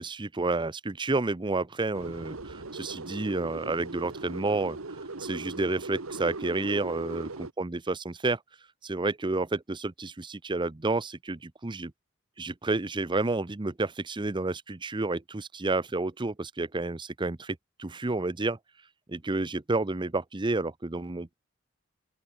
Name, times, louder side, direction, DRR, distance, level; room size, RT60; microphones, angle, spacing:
voice 1, 0.0-8.4 8.8-11.9 12.4-18.6 19.1-21.3, right 3 dB, 25° right, 0.7 m, -30 dB
sound 1, 1.9-7.5, right 3 dB, 85° right, 1.7 m, -39 dB
open air
head